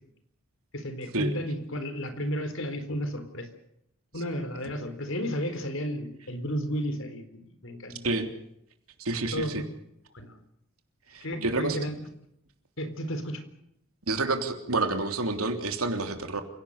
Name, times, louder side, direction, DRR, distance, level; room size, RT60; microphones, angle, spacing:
voice 1, 0.7-3.5 4.1-8.0 9.3-9.5 10.1-10.4 11.2-12.0 12.8-13.4, equal, 70° left, 9 dB, 4.2 m, -33 dB
voice 2, 9.0-9.6 11.1-11.9 14.1-16.4, right 2 dB, 90° right, 6 dB, 3.4 m, -29 dB
29.0 x 17.5 x 6.7 m, 0.76 s
head